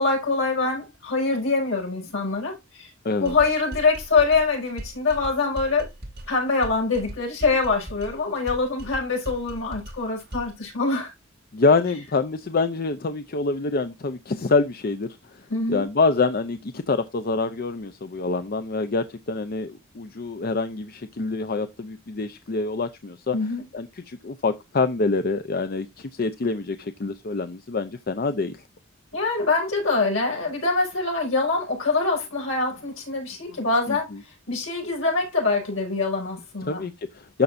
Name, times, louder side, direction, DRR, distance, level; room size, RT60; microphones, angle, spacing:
voice 1, 0.0-2.9 3.2-5.9 6.3-11.1 15.5-15.9 23.3-23.6 29.1-34.1 34.5-36.8, left 3 dB, 70° left, 5.9 m, -24 dB
sound 1, 3.3-10.6, right 1 dB, 50° right, 2.5 m, -39 dB
voice 2, 11.5-15.4 15.7-23.3 23.7-28.6 33.9-34.0 36.6-37.4, left 3 dB, 45° left, 0.6 m, -26 dB
13.0 x 5.4 x 2.6 m
head